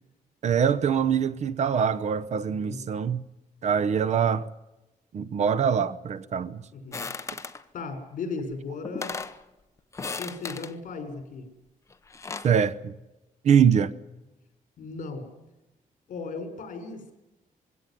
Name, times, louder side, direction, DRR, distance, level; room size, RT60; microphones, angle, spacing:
voice 1, 0.4-3.2 3.6-4.5 5.1-6.6 12.4-12.9 13.4-13.9, right 7 dB, 55° right, 0.9 m, -23 dB
voice 2, 2.4-2.8 6.7-7.1 7.7-9.2 10.2-11.5 14.8-15.3 16.1-17.1, left 4 dB, 60° left, 5.3 m, -36 dB
sound 1, 6.9-7.6 8.5-8.6 8.8-9.4 9.9-10.7 11.9-12.5, left 4 dB, 20° left, 1.0 m, -36 dB
21.5 x 17.0 x 9.9 m
wide cardioid pair, 180°, 14 cm